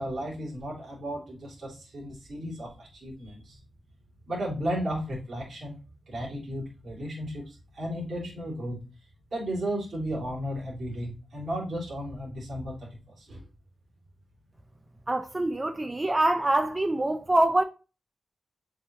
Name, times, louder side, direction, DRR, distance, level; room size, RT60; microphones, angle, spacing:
voice 1, 0.0-3.6 4.3-5.7 6.1-8.8 9.3-12.7 13.1-13.4, equal, 55° right, 3.3 m, -34 dB
voice 2, 15.1-17.6, right 1 dB, 20° right, 0.4 m, -25 dB
7.5 x 5.1 x 2.5 m
wide cardioid pair, 135°, 0 cm